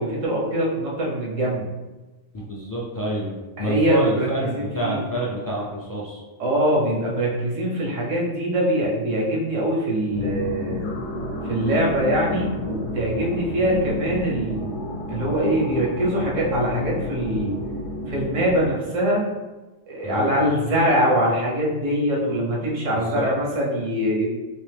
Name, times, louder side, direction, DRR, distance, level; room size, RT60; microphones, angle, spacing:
voice 1, 0.0-1.6 3.6-5.0 6.4-10.9 11.4-14.7 15.1-17.6 18.1-19.3 19.9-24.3, right 1 dB, 85° right, -3 dB, 1.3 m, -23 dB
voice 2, 2.3-6.2 20.0-20.4 22.9-23.3, right 1 dB, 30° left, -5 dB, 0.3 m, -27 dB
sound 1, 10.1-18.7, left 2 dB, 75° left, 1.0 m, -31 dB
3.4 x 2.9 x 3.3 m, 1.1 s
omnidirectional pair, 1.3 m